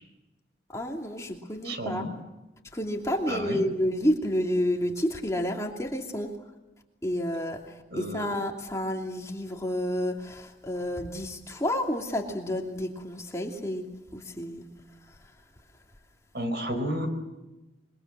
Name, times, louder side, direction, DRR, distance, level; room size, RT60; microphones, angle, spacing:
voice 1, 0.7-2.0 2.7-6.4 7.0-15.4, equal, 15° left, 1 dB, 2.8 m, -30 dB
voice 2, 1.6-2.1 3.3-3.6 7.9-8.3 16.3-17.1, equal, 65° right, 8 dB, 4.4 m, -32 dB
25.5 x 23.5 x 7.7 m, 1.0 s
head